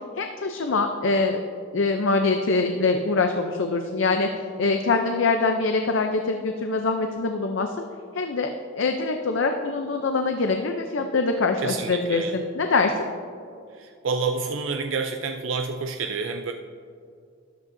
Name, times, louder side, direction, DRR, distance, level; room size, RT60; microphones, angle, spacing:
voice 1, 0.2-1.4 1.7-4.3 4.6-7.8 8.1-8.5 8.8-13.0, left 3 dB, 65° left, 5 dB, 0.6 m, -24 dB
voice 2, 11.6-12.4 13.7-16.5, right 4 dB, 70° right, 5 dB, 0.5 m, -28 dB
13.0 x 10.5 x 2.7 m, 2.3 s
head